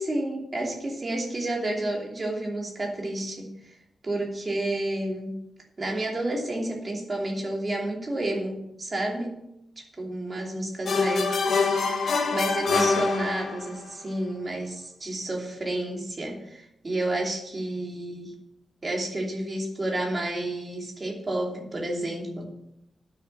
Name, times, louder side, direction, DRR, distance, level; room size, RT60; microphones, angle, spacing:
voice 1, 0.0-3.8 4.0-5.4 5.8-9.4 9.8-11.9 12.3-18.4 18.8-22.5, right 1 dB, 25° right, 0 dB, 2.8 m, -30 dB
sound 1, 10.9-13.8, left 4 dB, 60° left, 2.0 m, -25 dB
10.5 x 6.7 x 7.7 m, 0.82 s
wide cardioid pair, 150°, 0 cm